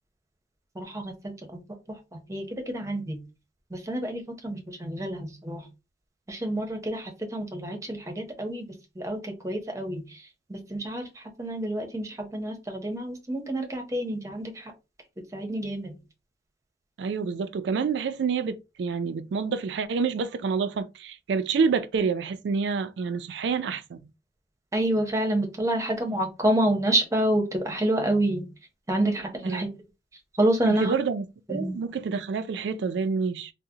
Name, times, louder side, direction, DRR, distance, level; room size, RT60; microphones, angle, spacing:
voice 1, 0.7-1.6 1.9-3.2 3.7-5.7 6.3-8.7 9.0-14.7 15.3-16.0 24.7-28.5 28.9-29.8 30.4-30.9 31.5-31.8, right 1 dB, 15° right, 0.7 m, -28 dB
voice 2, 17.0-24.0 29.4-29.7 30.6-33.5, right 5 dB, 85° right, 0.3 m, -28 dB
3.7 x 2.0 x 2.7 m
head